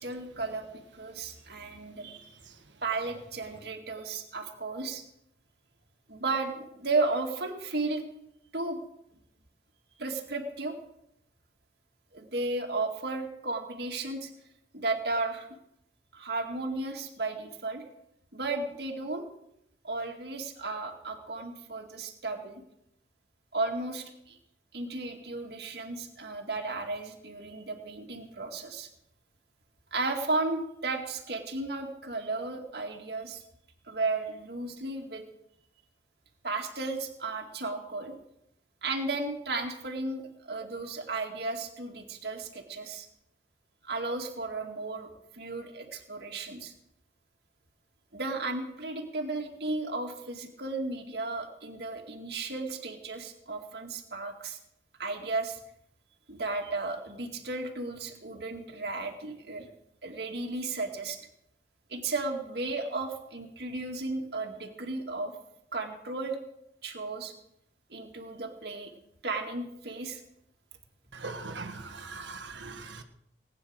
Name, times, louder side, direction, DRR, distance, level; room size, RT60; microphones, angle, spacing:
voice 1, 0.0-2.4 2.8-5.0 6.1-8.0 8.5-8.8 10.0-10.7 12.1-14.3 14.7-15.5 16.1-17.8 18.3-19.3 19.8-22.6 23.5-24.4 24.7-28.9 29.9-33.4 33.9-35.2 36.4-38.2 38.8-43.1 43.8-46.7 48.1-54.6 55.0-55.6 56.3-59.7 60.0-61.2 61.9-65.3 65.7-66.4 66.8-67.3 67.9-68.9 69.2-70.2, right 3 dB, 60° right, 2 dB, 2.1 m, -34 dB
voice 2, 71.1-73.0, right 3 dB, 80° right, 7 dB, 1.6 m, -40 dB
19.5 x 9.8 x 6.4 m, 0.78 s
head